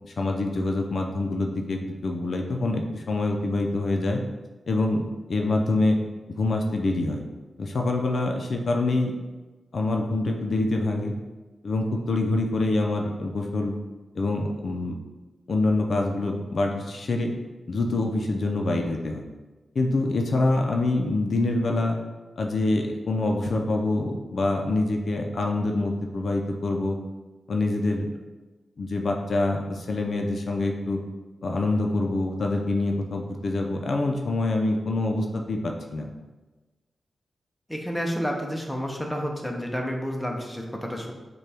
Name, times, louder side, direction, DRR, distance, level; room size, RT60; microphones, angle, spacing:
voice 1, 0.0-4.2 4.7-5.0 5.3-6.0 6.3-7.3 7.6-9.2 9.7-11.1 11.6-13.7 14.1-15.0 15.5-17.3 17.7-19.2 19.7-22.0 22.4-27.0 27.5-28.1 28.8-31.0 31.4-36.1, left 2 dB, 60° left, 2 dB, 0.5 m, -25 dB
voice 2, 37.7-41.1, equal, 5° left, 0 dB, 0.6 m, -30 dB
6.5 x 2.3 x 3.4 m, 1.2 s
wide cardioid pair, 110°, 0 cm